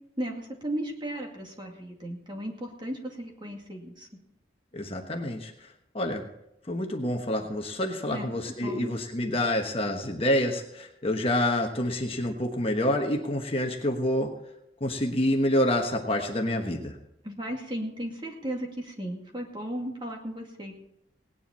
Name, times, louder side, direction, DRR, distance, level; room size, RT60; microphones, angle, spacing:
voice 1, 0.2-4.1 8.1-8.3 8.6-8.9 17.2-20.8, right 1 dB, 25° right, 1 dB, 2.2 m, -35 dB
voice 2, 4.7-5.7 5.9-6.3 6.7-14.3 14.8-17.0, left 1 dB, 30° left, 2 dB, 1.2 m, -27 dB
18.5 x 10.0 x 4.3 m, 0.80 s
head